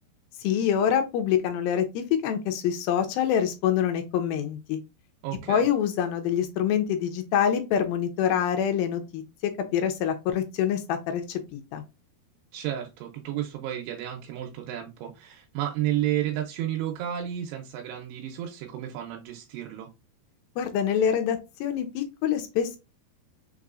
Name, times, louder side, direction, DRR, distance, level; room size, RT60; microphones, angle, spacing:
voice 1, 0.4-4.8 5.5-11.8 20.6-22.8, left 9 dB, 75° left, 2.3 m, -26 dB
voice 2, 5.2-5.7 12.5-19.9, right 12 dB, 85° right, 2.7 m, -32 dB
5.9 x 3.0 x 2.4 m
omnidirectional pair, 4.7 m